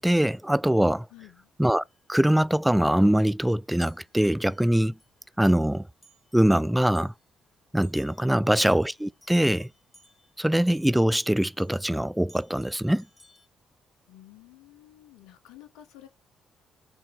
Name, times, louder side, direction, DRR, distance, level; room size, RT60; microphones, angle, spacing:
voice 1, 0.0-1.1 1.6-1.8 2.1-5.0 5.4-5.9 6.3-7.1 7.7-9.7 10.4-13.1, right 1 dB, 5° right, 0.4 m, -23 dB
voice 2, 1.1-1.5 14.1-16.1, left 13 dB, 75° left, 0.9 m, -51 dB
sound 1, 1.9-2.0 3.1-3.3 3.8-5.1 5.4-5.8 6.0-7.2 7.8-11.9 12.3-13.5, left 1 dB, 20° left, 3.1 m, -57 dB
6.8 x 4.0 x 6.3 m
hypercardioid pair, 45°, 0 cm